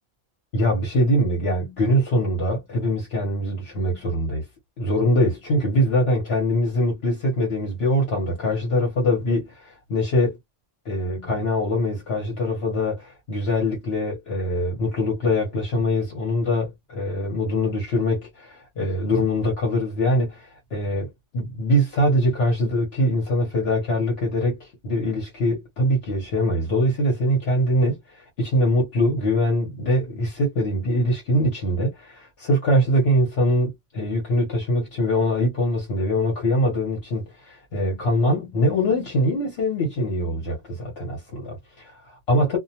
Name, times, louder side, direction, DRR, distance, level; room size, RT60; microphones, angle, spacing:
voice 1, 0.5-4.4 4.8-10.4 10.8-42.6, equal, 70° left, 1.1 m, -23 dB
2.4 x 2.2 x 2.8 m
omnidirectional pair, 1.1 m